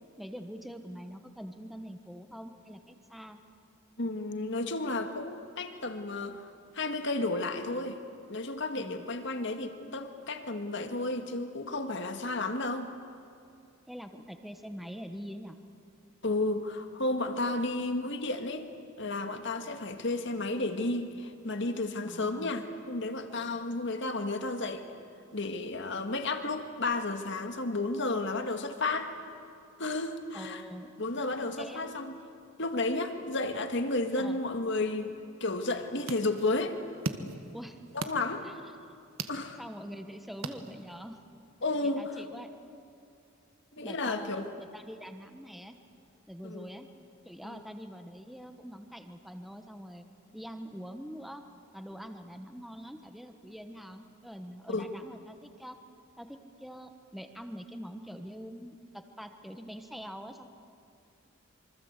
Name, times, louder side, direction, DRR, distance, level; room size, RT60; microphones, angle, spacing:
voice 1, 0.2-3.4 8.7-9.1 13.9-15.6 19.7-20.0 22.0-22.5 28.4-28.5 30.3-30.9 31.6-32.0 34.2-34.4 37.5-37.8 38.4-38.6 39.6-41.2 41.8-42.5 43.8-45.7 46.3-46.9 47.2-50.1 50.3-51.4 51.7-55.8 56.2-60.5, equal, ahead, 6 dB, 1.2 m, -44 dB
voice 2, 4.0-8.0 8.3-12.9 16.2-18.7 19.0-24.9 25.3-29.1 29.8-30.6 31.0-32.2 32.6-35.2 35.4-36.8 37.9-38.5 39.3-39.6 41.6-42.1 43.7-44.4 46.4-46.7 47.4-47.6 54.7-54.9, left 2 dB, 60° left, 6 dB, 1.9 m, -32 dB
sound 1, 35.6-41.2, right 3 dB, 75° right, 1.5 m, -42 dB
26.5 x 24.5 x 8.3 m, 2.5 s
head